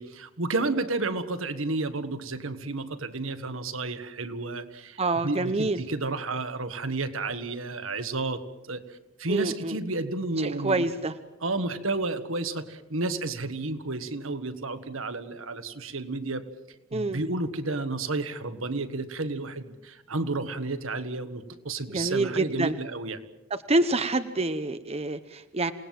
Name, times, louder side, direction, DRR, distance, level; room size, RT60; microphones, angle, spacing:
voice 1, 0.0-10.9 11.4-16.4 16.9-23.2, right 3 dB, 70° right, 10 dB, 1.6 m, -31 dB
voice 2, 5.0-5.8 9.3-9.8 10.4-11.1 16.9-17.2 21.9-22.7 23.7-25.7, right 2 dB, 30° right, 10 dB, 0.8 m, -27 dB
27.5 x 19.0 x 7.6 m, 1.0 s
head